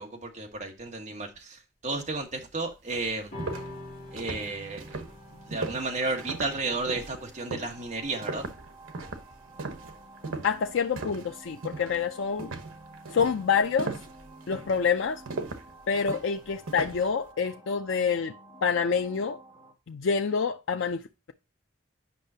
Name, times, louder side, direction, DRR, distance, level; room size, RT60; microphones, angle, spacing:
voice 1, 0.0-3.3 4.1-5.0 5.5-8.4, right 3 dB, 35° right, 1.4 m, -33 dB
sound 1, 2.4-2.5 2.9-11.3 11.6-12.0 12.4-17.1, right 3 dB, 85° right, 1.0 m, -38 dB
sound 2, 3.3-10.0, left 1 dB, 40° left, 1.8 m, -47 dB
sound 3, 4.1-19.7, right 2 dB, 10° right, 1.8 m, -51 dB
voice 2, 10.4-12.5 13.1-14.0 14.5-15.2 15.9-18.3 18.6-19.4 19.9-21.0, left 6 dB, 70° left, 0.4 m, -27 dB
8.3 x 5.5 x 2.7 m
head